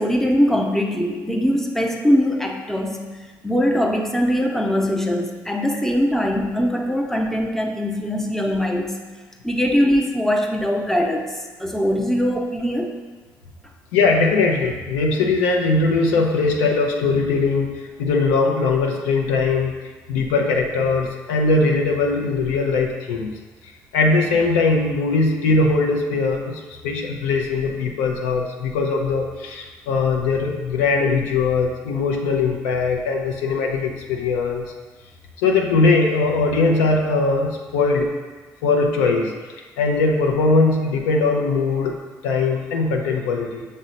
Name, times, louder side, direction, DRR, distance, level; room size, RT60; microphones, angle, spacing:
voice 1, 0.0-3.1 3.4-9.0 9.4-11.3 11.6-12.9, equal, 5° left, 2 dB, 0.6 m, -21 dB
voice 2, 13.9-19.7 20.1-23.3 23.9-34.7 35.4-38.1 38.6-39.3 39.8-42.0 42.2-43.7, left 3 dB, 90° left, 1 dB, 0.5 m, -20 dB
6.2 x 2.1 x 3.9 m, 1.3 s
hypercardioid pair, 55°, 9 cm